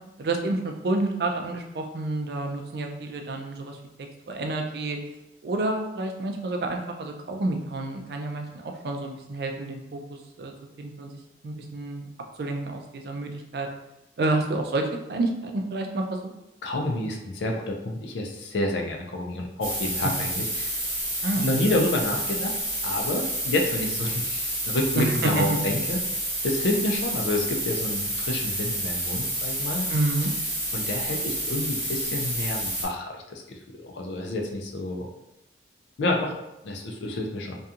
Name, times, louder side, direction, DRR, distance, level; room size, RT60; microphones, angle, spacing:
voice 1, 0.2-3.8 4.3-5.0 5.4-10.5 10.8-11.2 11.4-12.1 12.4-13.7 14.2-16.2 21.2-21.4 25.0-25.5 29.9-30.3, right 2 dB, 60° right, 3 dB, 0.4 m, -29 dB
voice 2, 16.6-20.8 21.3-22.6 22.8-26.0 26.4-29.9 30.7-35.1 36.0-36.3 36.6-37.6, left 1 dB, 85° left, 1 dB, 0.4 m, -29 dB
sound 1, 19.6-32.8, right 1 dB, 15° right, 1.1 m, -29 dB
2.7 x 2.3 x 2.4 m, 0.90 s
head